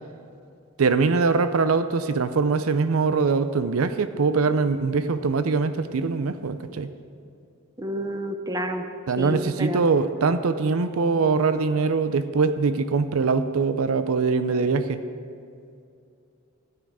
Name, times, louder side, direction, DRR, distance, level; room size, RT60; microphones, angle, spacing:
voice 1, 0.8-6.9 9.1-15.0, right 4 dB, 85° right, 11 dB, 0.5 m, -22 dB
voice 2, 7.8-8.8 9.2-9.9, equal, 15° right, 7 dB, 0.7 m, -29 dB
12.5 x 9.5 x 4.8 m, 2.5 s
head